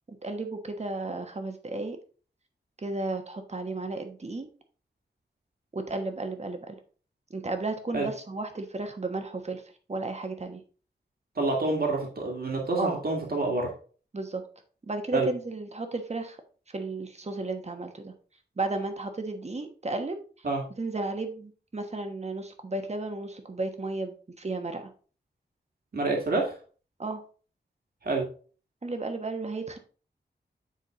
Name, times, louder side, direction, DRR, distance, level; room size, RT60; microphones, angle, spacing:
voice 1, 0.2-2.0 2.8-4.5 5.7-6.8 7.3-9.6 9.9-10.6 12.8-13.0 14.1-14.4 14.8-16.4 16.7-18.1 18.6-20.5 20.8-24.9 27.0-27.2 28.8-29.8, right 2 dB, 35° right, 6 dB, 1.3 m, -33 dB
voice 2, 11.4-13.7 15.1-15.3 20.4-20.6 25.9-26.5 28.0-28.2, right 3 dB, 55° right, 0 dB, 2.0 m, -27 dB
9.5 x 3.7 x 3.6 m, 0.39 s
wide cardioid pair, 70°, 19 cm